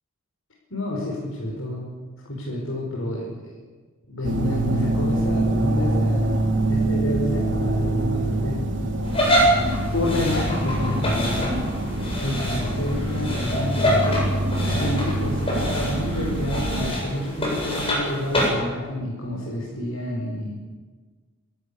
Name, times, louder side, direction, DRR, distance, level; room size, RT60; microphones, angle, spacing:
voice 1, 0.7-1.9 2.3-3.6 4.1-6.4 6.7-8.6 9.9-11.6 12.2-14.3 14.6-20.5, left 1 dB, 85° left, -3 dB, 5.3 m, -29 dB
sound 1, 4.2-16.9, right 1 dB, 60° right, 3.0 m, -25 dB
sound 2, 9.0-18.5, equal, 30° left, 7.4 m, -26 dB
27.5 x 13.5 x 8.7 m, 1.4 s
head